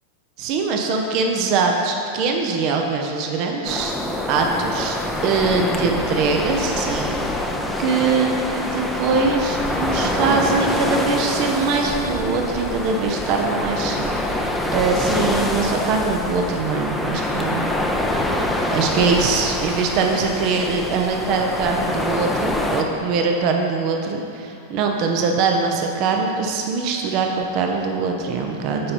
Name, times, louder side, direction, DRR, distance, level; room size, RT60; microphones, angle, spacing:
voice 1, 0.4-3.9 4.3-5.0 5.2-14.3 14.7-17.7 18.7-28.9, right 4 dB, 40° right, 3 dB, 0.7 m, -22 dB
sound 1, 3.6-22.8, left 1 dB, 5° left, 0.6 m, -25 dB
8.5 x 5.3 x 4.2 m, 2.7 s
figure-of-eight pair, 90°, 0 cm